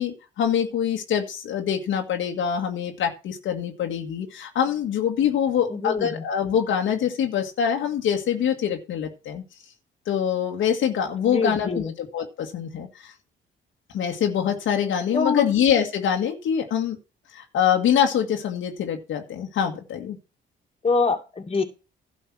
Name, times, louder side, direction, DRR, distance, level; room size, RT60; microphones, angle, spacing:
voice 1, 0.0-9.4 10.1-13.1 13.9-17.0 17.3-20.2, left 8 dB, 75° left, 3 dB, 1.9 m, -24 dB
voice 2, 5.7-6.2 11.2-11.9 15.1-15.5 20.8-21.6, left 4 dB, 30° left, 3 dB, 2.5 m, -25 dB
12.0 x 5.3 x 6.1 m, 0.31 s
cardioid pair, 90°, 20 cm